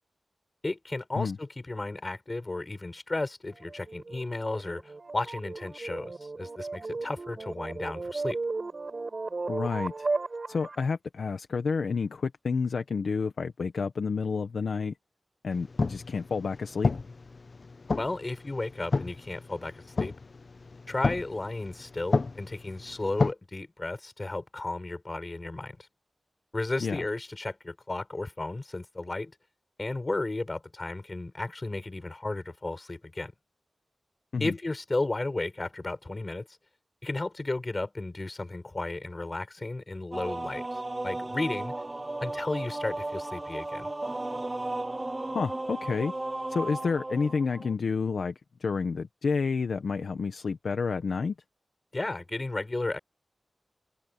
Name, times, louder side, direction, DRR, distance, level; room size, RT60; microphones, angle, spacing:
voice 1, 0.6-8.4 18.0-20.2 20.9-25.8 26.5-29.3 29.8-33.3 34.4-36.5 37.0-41.7 42.2-43.9 51.9-53.0, left 2 dB, 35° left, 6.3 m, -34 dB
sound 1, 3.5-10.8, right 3 dB, 50° right, 7.3 m, -35 dB
voice 2, 9.5-10.1 10.5-14.9 15.4-17.0 26.8-27.0 34.3-34.5 45.3-46.1 46.5-48.3 48.6-51.3, left 5 dB, 90° left, 1.4 m, -29 dB
sound 2, 15.5-23.3, left 3 dB, 55° left, 0.8 m, -32 dB
sound 3, 40.1-47.7, right 2 dB, 25° right, 0.6 m, -35 dB
wide cardioid pair, 80°, 0 cm